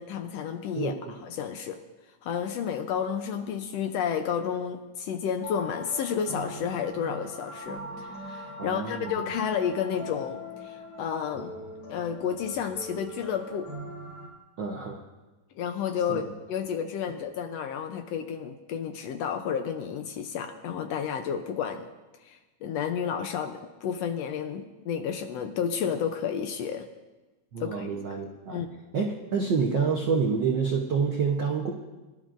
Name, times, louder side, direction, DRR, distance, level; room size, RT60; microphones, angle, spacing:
voice 1, 0.0-1.8 2.2-11.6 11.9-13.7 15.6-21.9 22.2-26.9 27.6-28.0 28.5-28.7, left 7 dB, 75° left, 7 dB, 1.6 m, -31 dB
sound 1, 5.4-14.3, left 1 dB, 50° left, 3.7 m, -41 dB
voice 2, 8.6-9.1 14.6-15.0 16.1-16.2 27.5-28.6 28.9-31.7, right 5 dB, 70° right, -1 dB, 1.1 m, -27 dB
23.5 x 12.0 x 2.5 m, 1.2 s
omnidirectional pair, 3.3 m